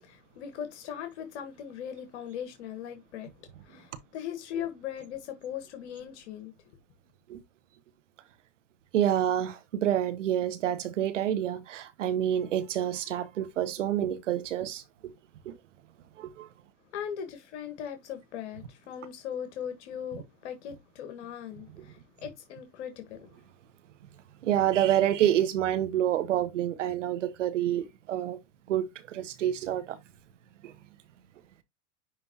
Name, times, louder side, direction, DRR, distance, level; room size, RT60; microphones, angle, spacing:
voice 1, 0.0-6.5 16.9-23.3, left 9 dB, 65° left, 1.5 m, -39 dB
voice 2, 8.9-15.1 15.4-15.6 16.2-16.5 24.4-28.4 28.7-30.0 30.6-30.7, right 11 dB, 85° right, 1.3 m, -28 dB
10.5 x 3.5 x 2.9 m
hypercardioid pair, 115°, 36 cm